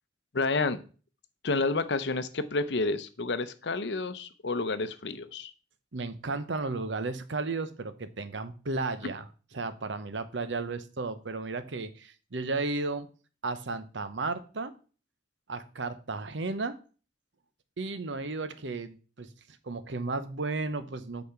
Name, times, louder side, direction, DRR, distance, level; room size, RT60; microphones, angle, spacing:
voice 1, 0.3-0.8 1.4-5.5, left 3 dB, 70° left, 13 dB, 0.7 m, -30 dB
voice 2, 5.9-9.3 9.5-13.1 13.4-14.7 15.5-16.8 17.8-19.3 19.6-21.2, right 3 dB, 85° right, 12 dB, 0.9 m, -34 dB
8.5 x 4.2 x 5.8 m, 0.37 s
head